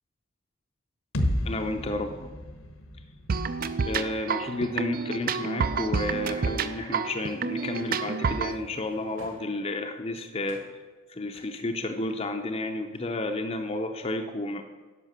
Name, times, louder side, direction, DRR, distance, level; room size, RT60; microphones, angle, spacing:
sound 1, 1.1-5.0, left 1 dB, 75° left, 1.1 m, -33 dB
voice 1, 1.4-2.3 3.8-10.6 11.1-14.7, left 2 dB, 30° left, 5 dB, 0.5 m, -31 dB
sound 2, 3.3-8.6, right 5 dB, 40° right, 0.4 m, -29 dB
sound 3, 7.0-9.9 10.4-10.7 11.3-12.5 12.8-13.1, right 1 dB, 65° right, 2.5 m, -53 dB
10.5 x 5.7 x 6.6 m, 1.3 s
head